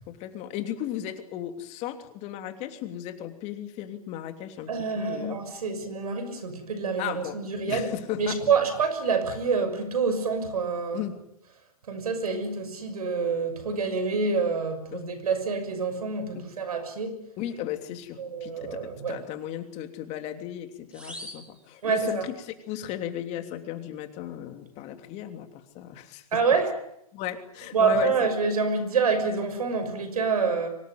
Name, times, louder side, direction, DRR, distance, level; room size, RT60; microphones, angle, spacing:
voice 1, 0.1-5.4 7.0-8.4 10.9-11.2 14.9-15.1 16.3-16.5 17.4-26.3 27.1-28.3, left 11 dB, 35° left, 7 dB, 3.2 m, -36 dB
voice 2, 4.7-7.9 8.2-11.0 11.9-17.1 18.2-19.2 21.8-22.2 26.3-26.7 27.7-30.7, right 5 dB, 80° right, 10 dB, 6.4 m, -27 dB
sound 1, 20.9-22.4, equal, 5° right, 5.7 m, -45 dB
24.5 x 19.0 x 9.4 m, 0.80 s
hypercardioid pair, 125°, 19 cm